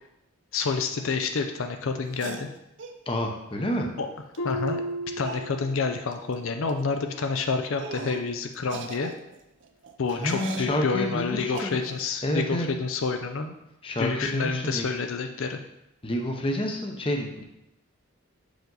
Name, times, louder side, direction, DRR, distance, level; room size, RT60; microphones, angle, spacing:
voice 1, 0.5-2.5 4.0-4.1 4.4-4.8 5.2-9.1 10.0-13.5 14.0-15.6, left 4 dB, 65° left, 5 dB, 0.5 m, -28 dB
sound 1, 2.1-3.0 4.3-4.4 4.7-4.8 5.2-5.5 6.1-6.3 6.6-6.8 7.2-7.3 7.8-8.3 8.6-10.8 11.5-12.1, right 4 dB, 55° right, 0.5 m, -39 dB
voice 2, 3.1-3.9 10.2-11.8 12.2-12.7 13.8-14.9 16.0-17.4, equal, 25° left, 2 dB, 0.7 m, -29 dB
Harp, 4.4-6.1 6.5-6.9 7.5-7.6, equal, 90° left, 0.9 m, -34 dB
6.6 x 4.9 x 3.9 m, 0.87 s
head